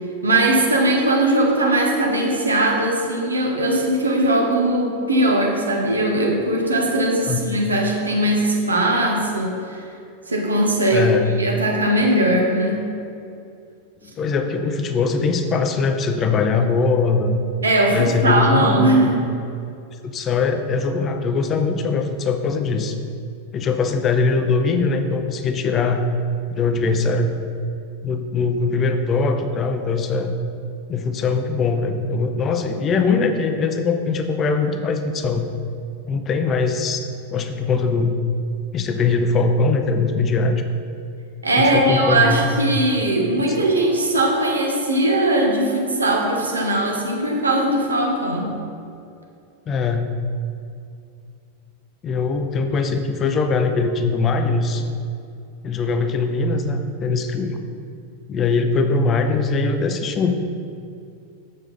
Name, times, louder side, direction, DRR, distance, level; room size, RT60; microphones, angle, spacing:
voice 1, 0.2-9.9 10.3-12.9 17.6-19.2 41.4-48.5, right 1 dB, 75° right, 0 dB, 1.4 m, -19 dB
voice 2, 10.9-11.2 14.0-17.4 17.9-19.1 20.0-23.0 23.5-26.0 26.5-27.3 28.0-30.3 30.9-35.5 36.1-37.1 37.3-38.2 38.7-40.6 41.6-42.4 49.7-50.1 52.0-54.8 55.6-57.6 58.3-60.3, left 4 dB, 25° left, 7 dB, 0.6 m, -21 dB
7.3 x 6.9 x 4.1 m, 2.5 s
figure-of-eight pair, 90°, 0 cm